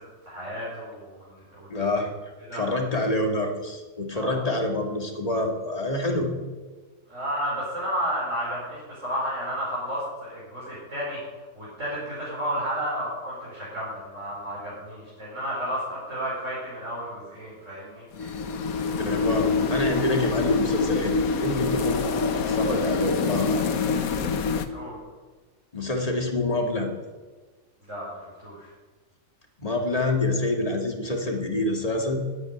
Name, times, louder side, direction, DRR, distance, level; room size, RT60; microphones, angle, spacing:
voice 1, 0.0-1.7 2.5-2.6 4.1-4.4 7.1-11.2 11.5-18.4 24.7-25.0 27.8-28.7, equal, 60° right, -8 dB, 5.5 m, -32 dB
voice 2, 1.7-6.3 19.1-23.6 25.7-26.9 29.6-32.2, left 2 dB, 25° left, 2 dB, 2.0 m, -27 dB
sound 1, 18.1-24.6, left 4 dB, 85° left, 1.5 m, -25 dB
10.5 x 9.7 x 9.7 m, 1.3 s
omnidirectional pair, 1.5 m